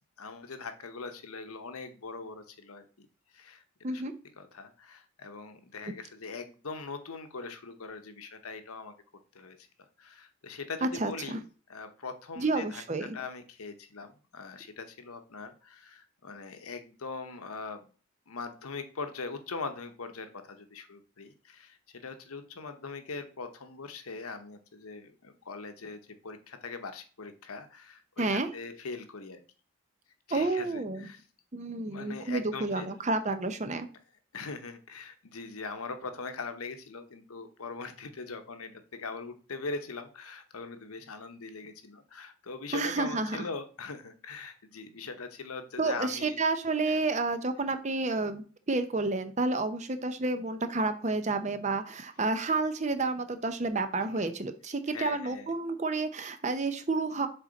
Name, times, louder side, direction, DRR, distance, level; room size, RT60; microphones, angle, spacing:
voice 1, 0.2-3.1 3.3-3.6 3.9-4.0 4.4-8.9 9.3-9.6 10.0-11.4 11.7-17.8 18.3-29.4 30.3-31.2 31.9-32.9 34.3-38.7 39.0-46.4 46.9-47.0 54.1-54.3 54.9-55.5, left 4 dB, 90° left, 8 dB, 1.0 m, -41 dB
voice 2, 10.8-11.4 12.4-13.2 28.2-28.5 30.3-31.1 31.5-33.9 42.7-43.4 45.8-57.3, right 3 dB, 35° right, 9 dB, 0.6 m, -30 dB
6.7 x 4.3 x 4.0 m, 0.39 s
head